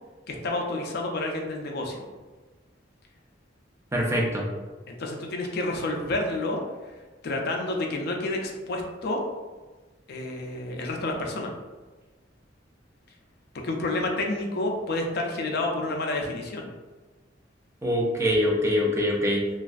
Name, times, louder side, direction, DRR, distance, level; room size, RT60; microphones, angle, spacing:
voice 1, 0.3-2.0 4.4-4.5 4.9-6.6 7.2-9.2 10.1-11.5 13.6-16.7, left 2 dB, 55° left, 2 dB, 0.4 m, -29 dB
voice 2, 3.9-4.5 17.8-19.5, equal, 15° right, -2 dB, 0.4 m, -24 dB
3.1 x 2.3 x 2.4 m, 1.3 s
head